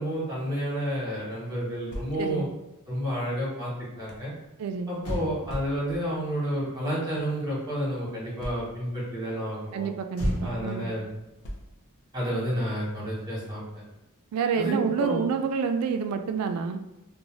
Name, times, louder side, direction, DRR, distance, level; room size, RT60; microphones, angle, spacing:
voice 1, 0.0-2.4 2.9-4.3 4.9-9.9 10.4-11.1 12.1-13.6 14.6-15.2, equal, 20° right, -6 dB, 1.1 m, -30 dB
sound 1, 1.9-2.5 3.3-4.3 5.5-6.1 6.9-7.1 7.4-7.5 8.4-9.0 9.9-10.1 11.4-12.0, equal, 50° left, 0.4 m, -41 dB
voice 2, 2.1-2.5 4.6-4.9 9.7-10.9 14.3-16.8, right 6 dB, 90° right, 8 dB, 0.3 m, -28 dB
Motor vehicle (road), 4.5-4.6 4.9-8.5 10.1-12.7 13.0-13.2, equal, 70° left, 0.9 m, -36 dB
2.6 x 2.1 x 3.0 m, 0.94 s
head